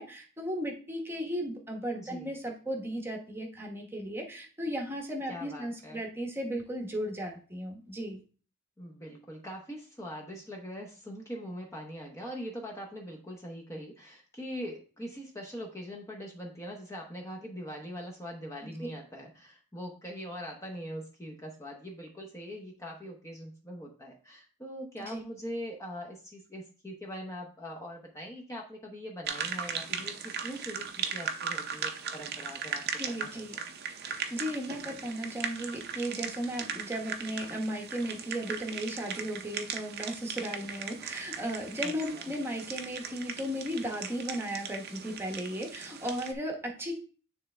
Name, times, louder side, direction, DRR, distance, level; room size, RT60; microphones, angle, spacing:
voice 1, 0.0-8.2 25.1-25.2 33.0-33.6 34.0-47.0, equal, 10° right, 1 dB, 1.0 m, -35 dB
voice 2, 1.9-2.3 5.3-6.0 8.8-32.8 33.2-33.6 41.8-42.2, equal, 15° left, -1 dB, 0.8 m, -42 dB
sound 1, 29.3-46.3, right 7 dB, 50° right, 0.6 m, -38 dB
9.4 x 3.2 x 3.3 m, 0.39 s
head